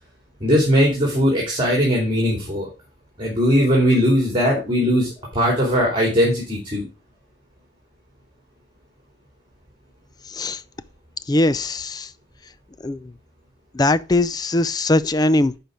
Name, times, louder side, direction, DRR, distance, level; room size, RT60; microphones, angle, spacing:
voice 1, 0.4-2.7 3.2-6.8, equal, 25° right, 2.8 m, -19 dB
voice 2, 10.3-10.6 11.3-12.1 12.8-13.1 13.7-15.6, left 2 dB, 20° left, 0.4 m, -20 dB
10.5 x 4.5 x 4.9 m
head